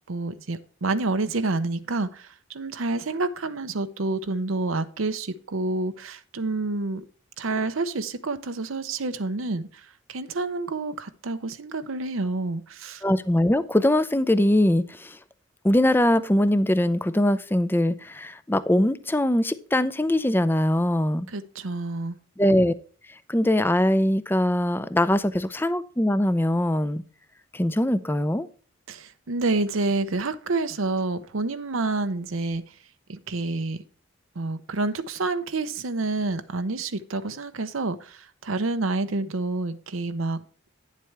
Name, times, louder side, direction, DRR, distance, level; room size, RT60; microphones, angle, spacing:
voice 1, 0.1-7.0 7.4-13.0 21.3-22.2 28.9-32.7 33.1-33.8 34.4-40.4, right 3 dB, 80° right, 0.7 m, -28 dB
voice 2, 13.0-15.2 15.6-21.3 22.4-22.7 23.3-27.0 27.5-28.5, left 1 dB, 10° left, 0.5 m, -22 dB
9.9 x 7.5 x 3.3 m
head